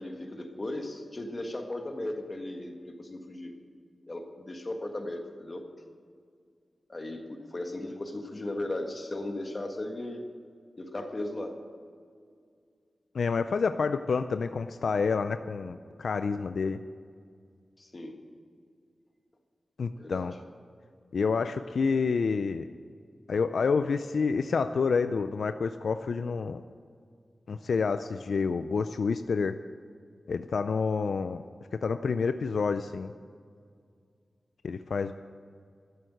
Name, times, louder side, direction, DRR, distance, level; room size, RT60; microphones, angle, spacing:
voice 1, 0.0-3.5 4.1-5.6 6.9-10.2 10.8-11.5 17.8-18.1 20.0-20.3, left 1 dB, 35° left, 4 dB, 1.7 m, -36 dB
voice 2, 13.1-16.8 19.8-20.3 21.1-22.7 23.3-26.6 27.5-29.5 30.3-31.4 31.8-33.1 34.6-35.1, left 5 dB, 85° left, 10 dB, 0.4 m, -28 dB
12.5 x 7.9 x 9.1 m, 2.1 s
wide cardioid pair, 90°, 0 cm